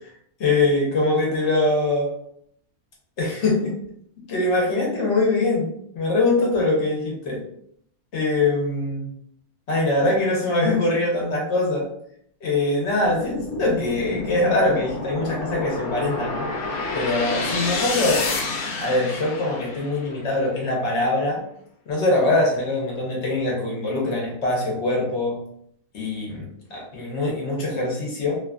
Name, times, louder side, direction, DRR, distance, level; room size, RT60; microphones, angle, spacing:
voice 1, 0.4-2.2 3.2-3.7 4.3-5.7 5.9-7.4 8.1-9.1 9.7-11.9 12.4-16.4 16.9-18.2 18.8-21.4 21.9-25.4 25.9-28.4, left 2 dB, 55° left, -2 dB, 1.0 m, -23 dB
sound 1, 13.0-20.3, left 3 dB, 75° left, 1.1 m, -29 dB
2.8 x 2.3 x 2.3 m, 0.67 s
omnidirectional pair, 1.6 m